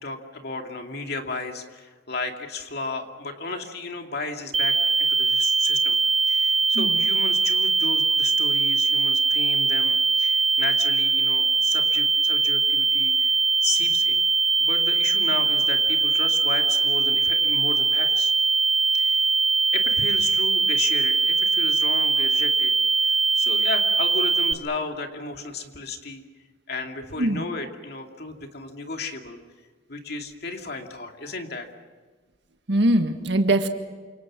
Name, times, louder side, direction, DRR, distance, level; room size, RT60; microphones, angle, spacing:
voice 1, 0.0-6.0 6.3-13.4 13.6-14.2 14.6-18.3 18.9-19.2 19.7-22.7 23.0-26.2 26.7-29.4 29.9-31.7, left 3 dB, 55° left, 4 dB, 2.4 m, -34 dB
sound 1, 4.5-24.5, right 4 dB, 30° right, 0.8 m, -21 dB
voice 2, 32.7-33.7, right 1 dB, 60° right, 6 dB, 1.7 m, -21 dB
28.5 x 26.5 x 6.2 m, 1.4 s
head